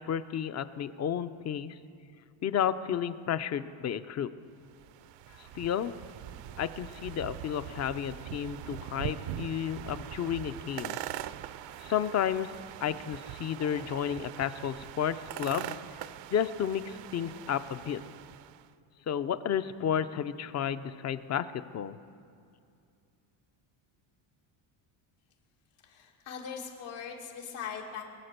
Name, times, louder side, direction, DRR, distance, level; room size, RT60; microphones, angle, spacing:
voice 1, 0.0-1.8 2.4-4.3 5.5-5.9 6.6-11.0 11.8-12.5 12.8-15.8 16.3-18.0 19.1-21.5 21.7-22.0, left 9 dB, 35° left, 13 dB, 0.5 m, -32 dB
sound 1, 4.6-18.7, right 12 dB, 65° right, 0.6 m, -42 dB
voice 2, 25.8-28.0, left 7 dB, 85° left, -2 dB, 2.4 m, -40 dB
22.0 x 8.5 x 6.7 m, 2.4 s
cardioid pair, 120°, 48 cm